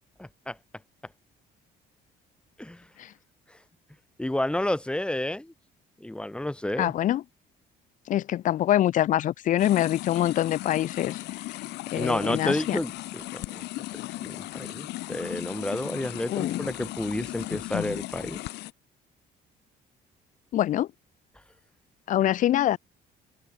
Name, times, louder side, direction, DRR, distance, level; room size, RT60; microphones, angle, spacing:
voice 1, 0.2-0.5 2.6-2.8 4.2-5.5 6.0-6.9 11.9-13.6 13.9-18.4, left 1 dB, 5° left, 2.4 m, -30 dB
voice 2, 6.8-7.2 8.1-11.2 11.9-12.8 16.3-16.7 17.5-17.9 20.5-20.9 22.1-22.8, left 12 dB, 50° left, 0.4 m, -25 dB
sound 1, 9.6-18.7, left 18 dB, 85° left, 4.8 m, -37 dB
cardioid pair, 110°, 17 cm